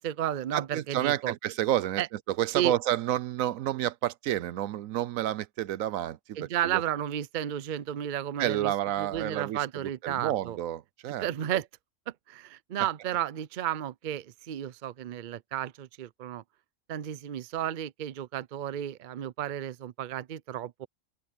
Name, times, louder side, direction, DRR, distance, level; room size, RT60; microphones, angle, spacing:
voice 1, 0.0-1.3 2.0-2.1 2.5-2.7 6.4-8.7 9.0-10.6 11.2-11.7 12.3-16.4 16.9-20.9, right 11 dB, 55° right, 0.5 m, -33 dB
voice 2, 0.5-2.0 2.3-6.8 8.4-11.6, right 12 dB, 75° right, 1.0 m, -30 dB
open air
omnidirectional pair, 1.5 m